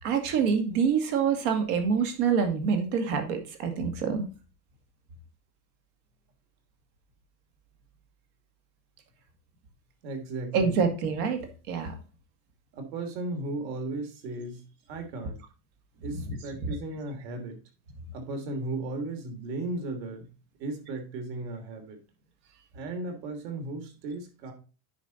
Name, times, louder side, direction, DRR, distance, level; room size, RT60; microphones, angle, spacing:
voice 1, 0.0-4.2 10.5-11.4 11.7-11.9 16.7-16.8, right 6 dB, 60° right, 6 dB, 2.2 m, -26 dB
voice 2, 10.0-10.8 12.7-14.6 14.9-15.4 16.0-17.6 18.1-20.3 20.6-22.0 22.7-24.5, right 2 dB, 85° right, 5 dB, 3.1 m, -35 dB
9.8 x 4.9 x 4.1 m, 0.34 s
supercardioid pair, 170°, 49 cm